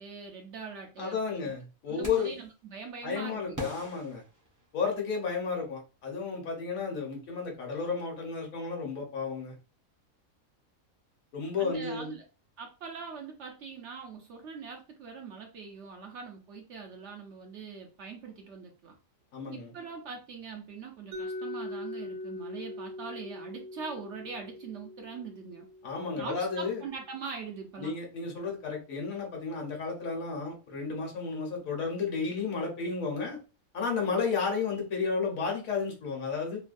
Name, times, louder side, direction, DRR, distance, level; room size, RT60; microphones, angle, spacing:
voice 1, 0.0-1.5 1.9-3.7 11.6-12.3 12.6-19.0 19.5-25.7 26.2-27.9, right 5 dB, 65° right, 3 dB, 0.8 m, -42 dB
voice 2, 1.0-2.3 3.0-4.2 4.7-9.5 11.3-12.1 19.3-19.7 25.8-26.8 27.8-33.4 33.7-36.6, left 5 dB, 75° left, 0 dB, 1.3 m, -32 dB
sound 1, 2.0-2.5 3.5-5.1, equal, 20° right, 0.5 m, -43 dB
Mallet percussion, 21.1-27.0, left 1 dB, 90° right, 1.1 m, -42 dB
3.1 x 2.2 x 2.5 m, 0.32 s
omnidirectional pair, 1.5 m